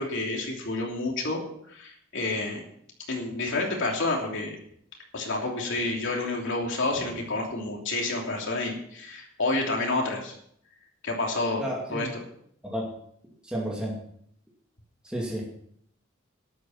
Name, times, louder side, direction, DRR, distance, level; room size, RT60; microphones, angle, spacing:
voice 1, 0.0-1.4 1.7-2.6 3.1-4.5 5.1-10.3 11.0-12.2, left 2 dB, 65° left, 0 dB, 3.0 m, -29 dB
voice 2, 11.6-12.1 12.6-12.9 13.5-14.0 15.0-15.5, equal, 5° right, -4 dB, 2.5 m, -31 dB
13.0 x 11.0 x 5.8 m, 0.69 s
head